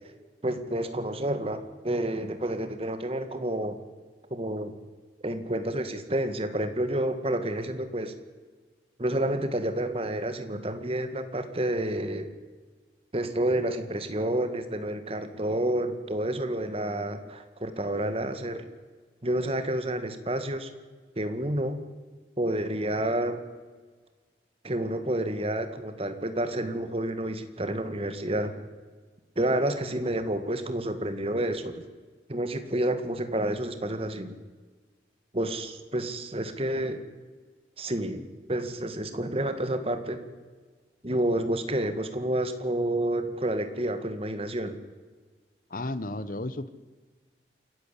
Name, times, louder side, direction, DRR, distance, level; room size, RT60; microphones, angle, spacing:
voice 1, 0.4-3.8 4.3-4.7 5.2-8.1 9.0-12.3 13.1-18.6 19.2-20.7 21.2-21.8 22.4-23.4 24.6-28.5 29.4-31.7 32.3-34.4 35.3-37.0 37.8-38.2 38.5-40.2 41.0-44.8, right 1 dB, 35° right, 8 dB, 1.8 m, -29 dB
voice 2, 45.7-46.7, left 2 dB, 50° left, 14 dB, 1.0 m, -33 dB
28.0 x 11.5 x 8.4 m, 1.4 s
head